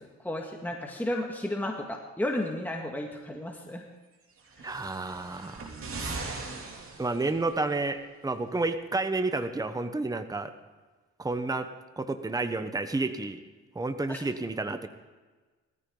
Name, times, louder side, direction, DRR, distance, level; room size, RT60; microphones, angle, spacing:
voice 1, 0.0-3.8 14.1-14.2, left 1 dB, 5° left, 1 dB, 1.9 m, -33 dB
sound 1, 4.4-7.7 8.7-8.8, right 3 dB, 45° right, 2.9 m, -40 dB
voice 2, 4.6-5.7 6.0-6.2 7.0-10.5 11.2-11.7 12.0-13.4 13.7-14.9, right 3 dB, 10° right, 9 dB, 1.1 m, -30 dB
19.5 x 14.5 x 3.9 m, 1.3 s
cardioid pair, 90°, 30 cm